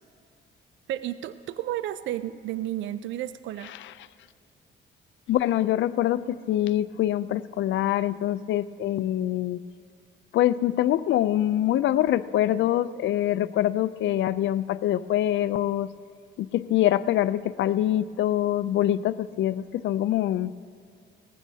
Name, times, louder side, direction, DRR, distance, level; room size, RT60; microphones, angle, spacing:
voice 1, 0.9-3.7, right 12 dB, 70° right, 14 dB, 0.4 m, -32 dB
voice 2, 5.3-9.6 10.3-15.9 16.4-20.5, left 12 dB, 70° left, 15 dB, 0.5 m, -24 dB
19.5 x 15.5 x 2.8 m, 2.3 s
cardioid pair, 90°, 20 cm